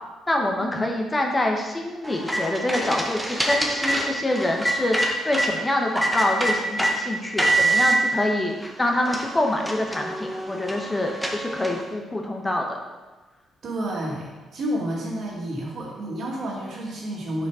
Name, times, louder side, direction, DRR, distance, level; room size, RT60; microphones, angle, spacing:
voice 1, 0.3-12.8, left 1 dB, 20° left, 2 dB, 1.0 m, -26 dB
sound 1, 2.0-5.5 6.0-6.9 7.4-8.0 8.6-8.7 9.1-11.9, right 2 dB, ahead, 1.1 m, -25 dB
voice 2, 13.6-17.5, right 1 dB, 60° right, -2 dB, 2.2 m, -30 dB
6.5 x 5.1 x 4.9 m, 1.2 s
cardioid pair, 90°, 0 cm